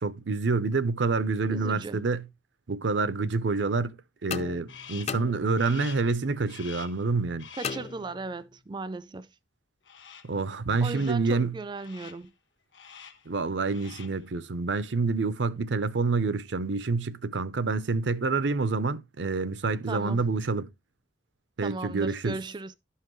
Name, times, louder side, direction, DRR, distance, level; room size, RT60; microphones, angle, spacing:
voice 1, 0.0-2.2 2.7-4.0 4.2-7.5 10.2-11.5 13.3-20.7 21.6-22.4, right 4 dB, 80° right, 0.7 m, -27 dB
voice 2, 1.5-2.0 7.6-9.3 10.8-12.3 19.9-20.3 21.6-22.7, right 3 dB, 25° right, 0.4 m, -37 dB
sound 1, 4.3-5.9 7.6-8.6, left 5 dB, 35° left, 0.5 m, -37 dB
Crow, 4.7-5.2 5.6-6.1 6.5-7.1 7.4-8.0 9.9-10.4 10.8-11.3 11.7-12.3 12.7-13.3 13.6-14.2, left 8 dB, 85° left, 1.2 m, -47 dB
12.0 x 5.7 x 3.1 m
head